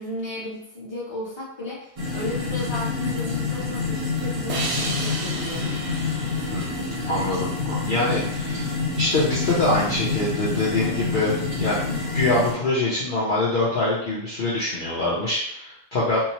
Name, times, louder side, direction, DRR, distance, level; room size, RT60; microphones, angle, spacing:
voice 1, 0.0-5.7, left 2 dB, 25° left, -7 dB, 0.9 m, -34 dB
sound 1, 2.0-12.5, left 4 dB, 35° right, 0.7 m, -27 dB
sound 2, 4.5-7.8, right 3 dB, 70° right, 0.8 m, -33 dB
voice 2, 7.1-16.2, left 2 dB, 50° left, -9 dB, 0.8 m, -24 dB
2.8 x 2.1 x 2.8 m, 0.73 s
omnidirectional pair, 1.3 m